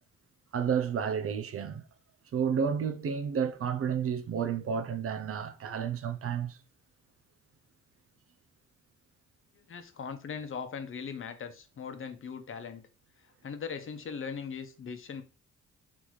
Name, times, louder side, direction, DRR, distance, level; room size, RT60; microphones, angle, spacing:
voice 1, 0.5-1.8 2.3-6.6, right 7 dB, 50° right, 0.5 m, -31 dB
voice 2, 9.7-12.8 13.4-15.2, left 6 dB, 45° left, 0.9 m, -39 dB
4.0 x 3.5 x 3.1 m
cardioid pair, 90°, 30 cm